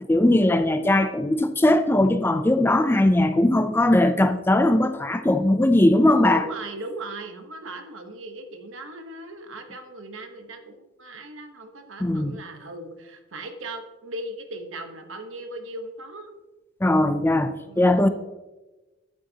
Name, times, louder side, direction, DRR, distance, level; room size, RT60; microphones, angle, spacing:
voice 1, 0.1-6.4 12.0-12.4 16.8-18.1, left 1 dB, 10° left, 0.4 m, -19 dB
voice 2, 6.3-16.3 17.6-17.9, right 2 dB, 75° right, 1.1 m, -38 dB
11.0 x 8.4 x 2.8 m
head